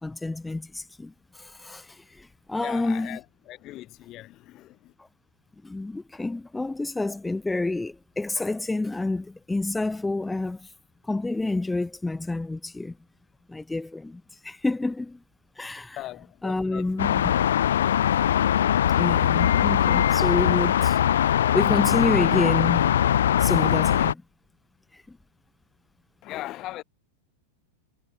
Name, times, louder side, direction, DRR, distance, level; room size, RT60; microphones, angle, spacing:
voice 1, 0.0-3.2 5.0-5.1 5.6-10.7 11.0-13.0 13.5-15.2 15.6-16.0 16.4-17.2 19.0-21.0 21.5-23.0 23.4-24.2 24.9-25.2, left 2 dB, 5° left, 2.0 m, -29 dB
voice 2, 2.6-4.9 16.0-17.1 26.2-26.8, left 16 dB, 35° left, 2.5 m, -40 dB
sound 1, 17.0-24.1, left 10 dB, 65° left, 0.8 m, -21 dB
figure-of-eight pair, 90°, 0 cm